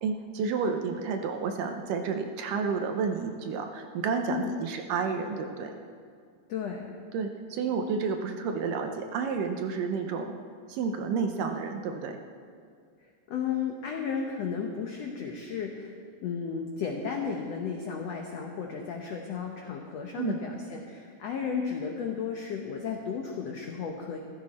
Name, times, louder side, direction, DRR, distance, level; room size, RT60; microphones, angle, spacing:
voice 1, 0.0-5.7 7.1-10.3 10.7-12.2 20.2-20.4, right 5 dB, 75° right, 5 dB, 2.1 m, -30 dB
voice 2, 6.5-6.9 13.3-15.9 16.2-24.2, left 6 dB, 90° left, 1 dB, 1.4 m, -34 dB
15.0 x 13.5 x 4.2 m, 2.1 s
omnidirectional pair, 4.3 m